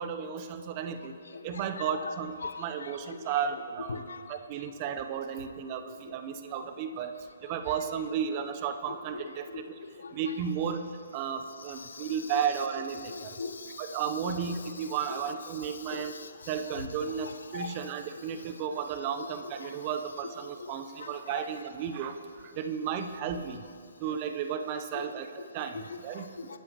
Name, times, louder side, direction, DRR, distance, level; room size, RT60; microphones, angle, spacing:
voice 1, 0.0-1.2 1.4-2.3 2.6-4.0 4.3-7.1 7.4-9.6 10.1-13.4 13.8-16.1 16.5-23.6 24.0-26.2, right 7 dB, 30° right, 8 dB, 1.0 m, -34 dB
voice 2, 1.3-3.2 3.5-3.6 3.9-4.2 7.7-7.8 8.1-8.5 9.1-9.2 9.5-9.6 10.0-10.4 11.8-15.2 15.6-16.9 17.2-17.8 19.2-19.7 20.6-20.7 21.0-21.4 23.3-23.4 24.9-25.1 25.7-26.6, left 4 dB, 65° left, 8 dB, 1.2 m, -42 dB
27.5 x 13.0 x 3.2 m, 2.3 s
figure-of-eight pair, 130°, 0 cm